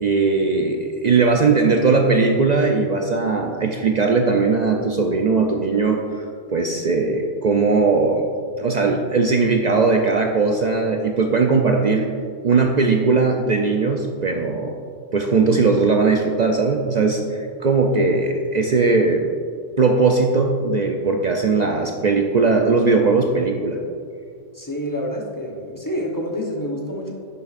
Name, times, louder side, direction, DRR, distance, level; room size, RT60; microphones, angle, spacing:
voice 1, 0.0-8.3 8.6-12.1 12.4-14.8 15.1-19.3 19.8-23.8, right 4 dB, 65° right, 2 dB, 0.4 m, -19 dB
voice 2, 24.5-27.1, equal, 20° left, -2 dB, 0.8 m, -28 dB
10.5 x 6.7 x 2.5 m, 2.2 s
omnidirectional pair, 1.3 m